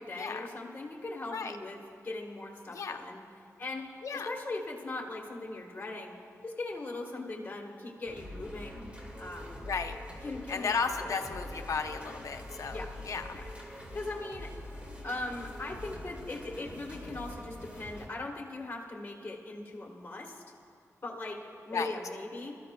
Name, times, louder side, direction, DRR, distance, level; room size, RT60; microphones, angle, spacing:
voice 1, 0.0-1.8 2.0-3.2 3.6-6.2 6.4-8.8 9.2-9.6 10.2-10.7 11.0-11.2 12.7-12.9 13.3-14.5 15.0-20.4 21.0-21.4 21.6-22.6, left 2 dB, 30° left, -1 dB, 1.4 m, -40 dB
sound 1, 8.1-18.1, left 1 dB, 20° right, 1.9 m, -44 dB
voice 2, 10.5-12.8 13.1-13.4 21.7-21.9, left 5 dB, 70° left, 6 dB, 0.7 m, -34 dB
21.0 x 13.0 x 2.3 m, 2.4 s
cardioid pair, 80°, 6 cm